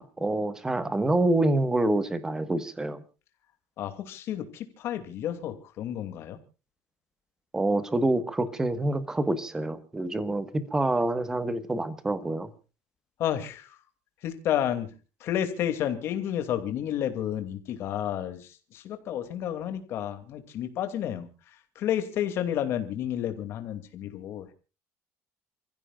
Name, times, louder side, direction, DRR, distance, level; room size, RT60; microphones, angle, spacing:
voice 1, 0.0-3.0 7.5-12.5, right 2 dB, 10° right, 13 dB, 1.4 m, -27 dB
voice 2, 3.8-6.4 13.2-13.7 14.2-14.9 15.2-21.3 21.8-24.5, left 10 dB, 45° left, 8 dB, 2.7 m, -31 dB
29.0 x 15.5 x 2.5 m, 0.34 s
cardioid pair, 175°, 6 cm